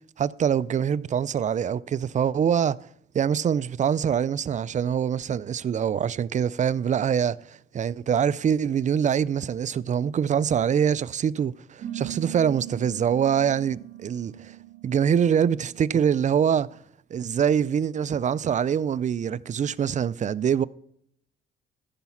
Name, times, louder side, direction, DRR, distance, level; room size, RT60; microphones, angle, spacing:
voice 1, 0.2-2.8 3.1-14.6 14.8-16.7 17.1-20.6, right 8 dB, 40° right, 0.4 m, -24 dB
sound 1, 11.8-16.8, right 14 dB, 75° right, 1.5 m, -40 dB
13.5 x 5.8 x 5.7 m
cardioid pair, 90°, 20 cm